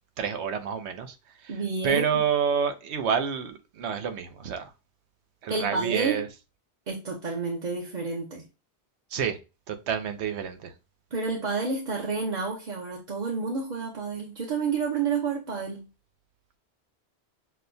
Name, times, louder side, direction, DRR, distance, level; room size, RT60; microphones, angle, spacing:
voice 1, 0.2-1.1 1.4-1.5 1.8-4.7 5.4-6.3 9.1-9.4 9.7-10.7, right 7 dB, 90° right, 0.9 m, -28 dB
voice 2, 1.5-2.0 5.5-6.2 6.9-8.4 11.1-15.9, right 4 dB, 45° right, 0.8 m, -30 dB
6.1 x 2.2 x 2.6 m
omnidirectional pair, 1.1 m